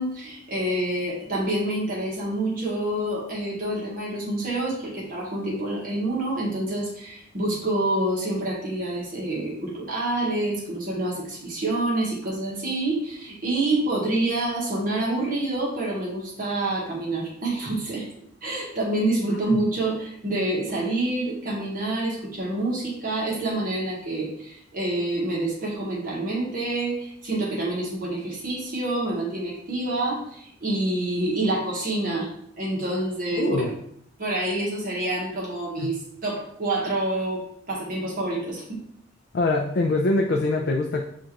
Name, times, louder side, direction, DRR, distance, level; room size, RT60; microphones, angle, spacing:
voice 1, 0.0-18.1 18.4-32.3 32.6-33.7 34.2-38.8, right 2 dB, 50° right, -5 dB, 1.2 m, -27 dB
voice 2, 33.4-33.7 35.8-35.9 39.3-41.1, left 2 dB, 60° left, 2 dB, 0.4 m, -23 dB
7.3 x 2.5 x 2.9 m, 0.71 s
head